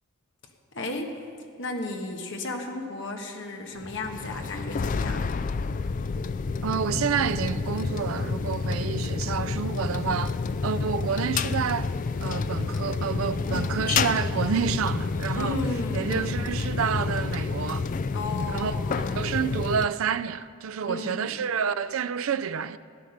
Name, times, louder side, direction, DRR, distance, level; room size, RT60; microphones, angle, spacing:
voice 1, 0.7-1.2 1.6-5.4 15.4-16.4 18.1-19.3 20.8-21.4, left 2 dB, 60° left, 1.4 m, -34 dB
sound 1, 3.8-19.9, left 4 dB, 40° left, 0.3 m, -29 dB
voice 2, 6.6-10.3 10.6-11.9 12.2-15.6 15.9-17.9 18.5-22.8, right 7 dB, 75° right, 0.4 m, -29 dB
14.0 x 9.3 x 6.5 m
head